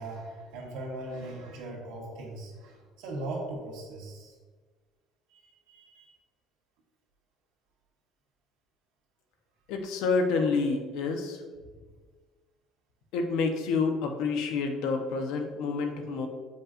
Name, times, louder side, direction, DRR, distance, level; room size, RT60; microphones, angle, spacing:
voice 1, 0.0-4.3 5.3-6.2, right 2 dB, 85° right, -1 dB, 1.6 m, -39 dB
voice 2, 9.7-11.4 13.1-16.3, left 4 dB, 70° left, 4 dB, 0.8 m, -28 dB
7.7 x 5.3 x 2.5 m, 1.5 s
cardioid pair, 175°, 0 cm